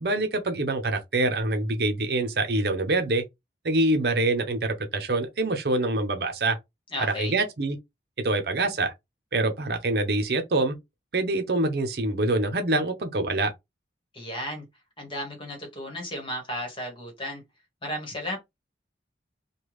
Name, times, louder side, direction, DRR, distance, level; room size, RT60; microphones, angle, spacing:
voice 1, 0.0-3.2 3.6-6.6 7.0-7.8 8.2-8.9 9.3-10.8 11.1-13.5, right 2 dB, 60° right, 0.7 m, -25 dB
voice 2, 6.9-7.4 14.1-14.6 15.0-17.4 17.8-18.4, equal, 30° left, 1.3 m, -34 dB
3.3 x 2.3 x 3.1 m
head